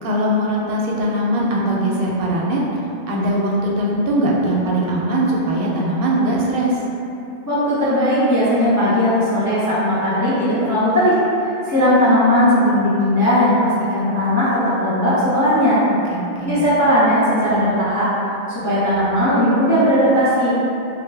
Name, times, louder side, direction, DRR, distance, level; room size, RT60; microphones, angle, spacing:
voice 1, 0.0-2.8 3.1-6.7 16.1-16.7, right 1 dB, 65° right, -3 dB, 0.7 m, -20 dB
voice 2, 7.5-15.8 16.4-18.1 18.6-20.5, equal, 25° left, -11 dB, 0.3 m, -17 dB
2.6 x 2.1 x 3.2 m, 2.8 s
omnidirectional pair, 1.1 m